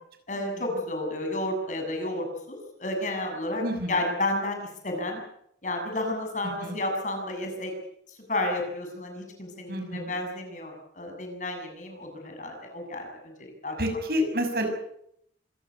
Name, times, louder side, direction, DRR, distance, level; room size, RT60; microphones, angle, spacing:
voice 1, 0.3-3.6 3.9-5.2 5.6-7.7 8.3-13.8, left 1 dB, 45° left, 4 dB, 7.4 m, -31 dB
voice 2, 3.6-4.0 6.6-6.8 9.7-10.1 13.8-14.7, equal, 60° right, 5 dB, 6.3 m, -28 dB
26.5 x 16.5 x 8.4 m, 0.73 s
head